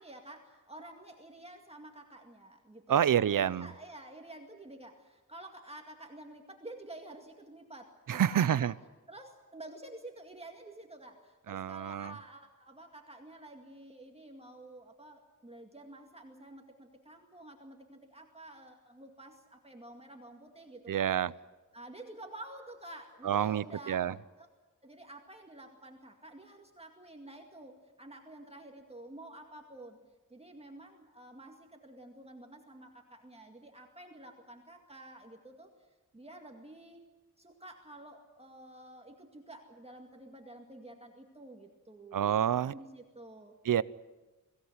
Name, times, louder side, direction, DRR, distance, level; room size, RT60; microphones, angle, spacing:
voice 1, 0.0-8.7 9.1-21.1 21.7-24.5 24.8-30.0 30.3-35.7 36.1-37.0 37.4-43.5, right 1 dB, 20° right, 3 dB, 2.1 m, -50 dB
voice 2, 2.9-3.7 8.1-8.7 11.5-12.1 20.9-21.3 23.2-24.1 42.1-42.7 43.6-43.8, right 9 dB, 80° right, 19 dB, 0.7 m, -28 dB
23.5 x 17.0 x 9.7 m, 1.2 s
wide cardioid pair, 150°, 32 cm